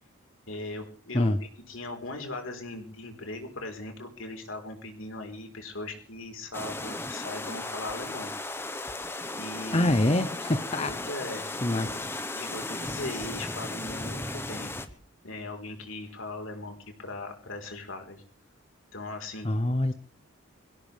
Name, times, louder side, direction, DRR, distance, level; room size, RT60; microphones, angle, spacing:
voice 1, 0.5-8.3 9.4-10.2 10.8-12.0 12.3-14.8 15.2-18.2 18.9-19.5, left 2 dB, 85° left, 4 dB, 4.2 m, -39 dB
sound 1, 6.5-14.9, left 2 dB, 10° left, 1.0 m, -36 dB
sound 2, 7.9-8.0 8.9-10.0 10.9-12.0 12.9-14.4 14.9-15.0, equal, 10° right, 2.0 m, -51 dB
voice 2, 9.7-10.9 11.6-11.9 19.4-19.9, left 1 dB, 30° left, 10 dB, 0.8 m, -25 dB
24.5 x 17.0 x 3.4 m, 0.38 s
head